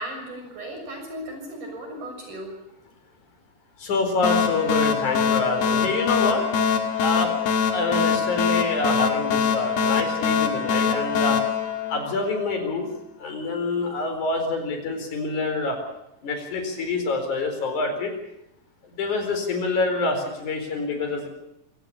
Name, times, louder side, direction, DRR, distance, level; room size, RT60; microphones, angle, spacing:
voice 1, 0.0-2.6, right 1 dB, 50° right, 3 dB, 8.1 m, -36 dB
voice 2, 3.8-6.5 7.0-7.3 7.7-11.4 11.9-12.9 13.2-15.8 16.2-18.1 19.0-21.3, left 3 dB, 50° left, 5 dB, 5.6 m, -26 dB
sound 1, 4.2-12.6, left 6 dB, 80° left, 4.0 m, -23 dB
26.0 x 17.5 x 8.5 m, 0.84 s
omnidirectional pair, 4.5 m